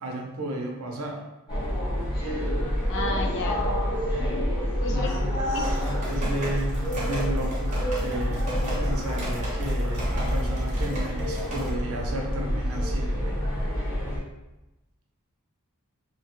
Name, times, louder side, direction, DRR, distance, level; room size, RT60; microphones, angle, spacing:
voice 1, 0.0-1.2 4.9-13.4, right 1 dB, 70° right, 1 dB, 0.6 m, -34 dB
sound 1, 1.5-14.2, equal, 20° left, 1.0 m, -27 dB
voice 2, 2.8-3.7 4.8-5.3 5.5-5.7 7.2-7.4, left 3 dB, 55° left, 2 dB, 0.4 m, -32 dB
sound 2, 5.6-11.7, right 1 dB, 30° right, 0.8 m, -37 dB
2.8 x 2.2 x 2.9 m, 0.98 s
head